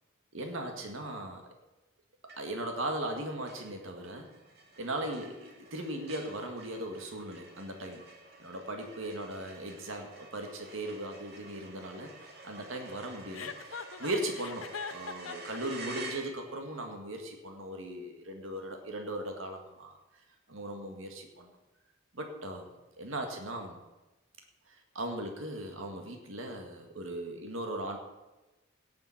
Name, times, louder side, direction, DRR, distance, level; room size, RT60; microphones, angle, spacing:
voice 1, 0.3-1.4 2.4-4.3 4.8-8.1 8.4-20.0 20.5-21.5 22.1-22.7 23.0-23.8 24.7-28.0, right 1 dB, 75° right, 4 dB, 1.8 m, -38 dB
sound 1, 2.3-2.7 3.1-3.2 3.5-16.7, right 2 dB, 50° right, 2.3 m, -49 dB
Chuckle chortle, 13.3-15.6, left 6 dB, 80° left, 0.7 m, -41 dB
17.5 x 7.2 x 5.9 m, 1.1 s
head